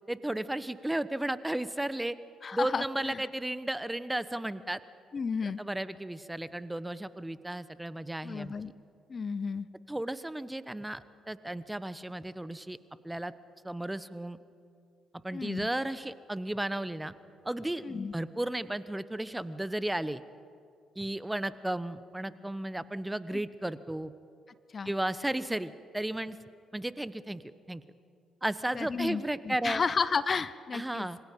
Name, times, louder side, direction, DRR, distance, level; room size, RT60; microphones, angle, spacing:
voice 1, 0.1-2.2 2.5-4.8 5.4-8.5 9.9-12.8 13.0-13.3 13.6-14.4 15.2-17.1 17.4-20.2 21.0-24.1 24.8-26.4 26.7-27.8 28.4-29.8 30.7-31.2, right 1 dB, 10° right, 15 dB, 1.0 m, -34 dB
voice 2, 2.4-3.2 5.1-5.6 8.2-8.7 9.1-9.7 15.3-15.7 17.8-18.1 24.7-24.9 28.7-31.1, left 5 dB, 45° left, 16 dB, 0.8 m, -32 dB
26.5 x 25.0 x 5.4 m, 2.4 s
hypercardioid pair, 45°, 0 cm